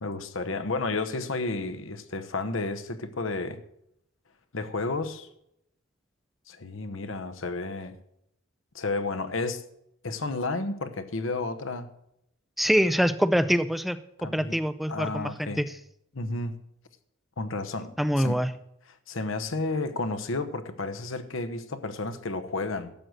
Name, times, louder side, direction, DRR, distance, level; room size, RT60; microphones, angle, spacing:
voice 1, 0.0-3.6 4.5-5.3 6.5-8.0 8.7-9.6 10.0-11.9 14.2-14.6 14.9-15.6 16.1-16.6 17.4-18.4 19.1-22.9, left 3 dB, 75° left, 1.0 m, -32 dB
voice 2, 12.6-14.0 14.3-15.7 18.0-18.5, equal, ahead, 0.5 m, -24 dB
12.0 x 7.9 x 6.3 m
head